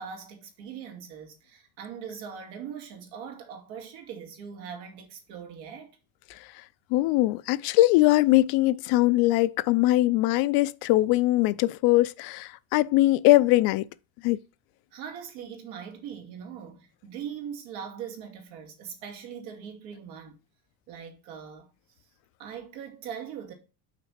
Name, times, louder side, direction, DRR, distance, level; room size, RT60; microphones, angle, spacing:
voice 1, 0.0-6.0 14.9-20.4 20.9-21.7 22.4-23.5, right 7 dB, 75° right, 2.5 m, -41 dB
voice 2, 6.9-13.9 14.2-14.4, left 17 dB, 60° left, 0.5 m, -21 dB
6.0 x 4.4 x 6.4 m
cardioid pair, 140°, 42 cm